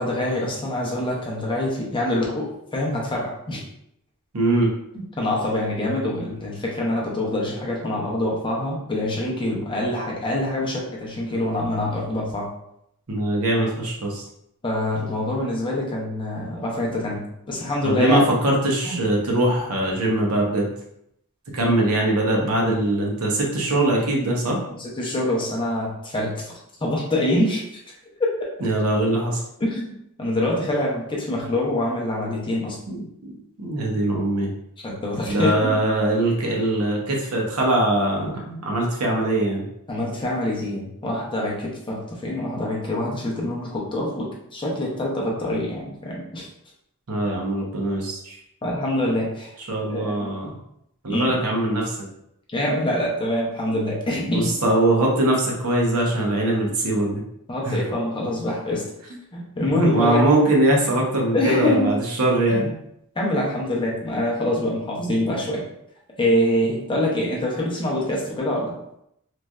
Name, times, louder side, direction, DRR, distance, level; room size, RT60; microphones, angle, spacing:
voice 1, 0.0-3.6 4.9-12.5 14.6-17.2 17.5-18.2 18.8-19.0 21.6-21.8 24.8-26.5 26.8-27.6 28.2-28.3 29.6-29.9 30.2-32.8 34.8-35.7 39.9-46.5 48.6-49.5 49.9-50.3 51.1-51.4 52.5-54.5 57.5-58.8 59.3-60.2 61.3-61.9 62.5-62.6 63.2-65.6 66.2-68.7, left 1 dB, 20° left, -3 dB, 0.6 m, -25 dB
voice 2, 4.3-4.7 13.1-14.2 17.8-20.7 21.5-24.6 28.6-29.4 32.9-33.0 33.6-34.5 35.3-39.6 47.1-48.4 49.7-50.5 51.0-52.0 54.3-57.2 57.6-57.8 59.7-62.7, right 1 dB, 70° right, -1 dB, 0.8 m, -21 dB
3.1 x 2.5 x 2.2 m, 0.76 s
head